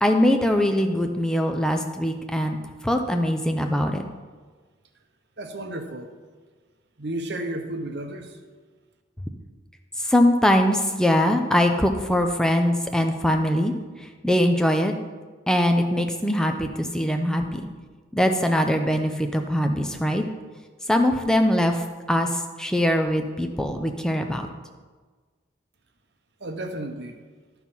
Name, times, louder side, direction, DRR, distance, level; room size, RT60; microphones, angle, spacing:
voice 1, 0.0-2.6 2.8-4.0 10.0-13.7 14.0-14.9 15.5-17.7 18.1-20.2 20.9-24.5, equal, 5° left, 4 dB, 0.5 m, -22 dB
voice 2, 5.4-6.1 7.0-8.4 26.4-27.2, right 1 dB, 60° right, 5 dB, 0.9 m, -32 dB
12.5 x 4.6 x 5.5 m, 1.4 s
head